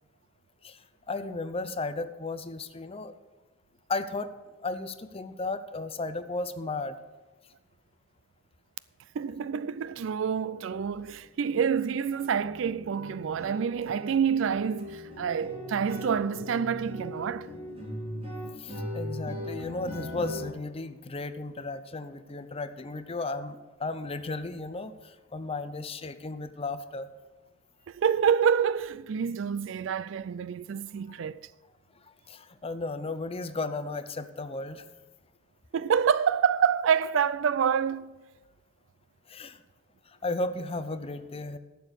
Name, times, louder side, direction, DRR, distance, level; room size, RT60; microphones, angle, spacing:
voice 1, 0.6-3.1 3.9-4.3 4.6-7.0 18.6-27.1 31.1-31.2 32.3-34.9 39.3-39.6 40.2-41.6, left 3 dB, 30° left, 0.6 m, -34 dB
voice 2, 9.1-17.5 27.9-31.4 35.7-38.2, right 7 dB, 70° right, 0.4 m, -27 dB
sound 1, 10.5-10.7 11.0-11.2 11.4-20.5, left 1 dB, 30° right, 3.6 m, -40 dB
11.5 x 7.0 x 6.5 m
head